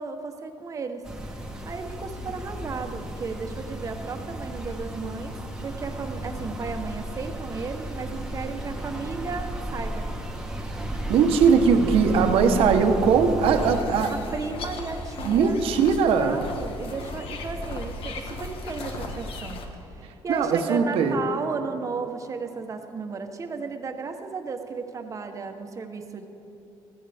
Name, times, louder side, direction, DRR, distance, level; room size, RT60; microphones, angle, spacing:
voice 1, 0.0-10.1 14.1-15.6 16.1-26.3, right 4 dB, 35° right, 6 dB, 1.0 m, -34 dB
sound 1, 1.0-13.8, right 1 dB, 5° right, 1.3 m, -34 dB
voice 2, 11.1-14.1 15.2-16.4 20.3-21.2, right 6 dB, 80° right, 6 dB, 1.1 m, -20 dB
sound 2, 13.5-19.7, left 2 dB, 75° left, 1.4 m, -36 dB
15.5 x 14.5 x 3.5 m, 3.0 s
cardioid pair, 125°, 9 cm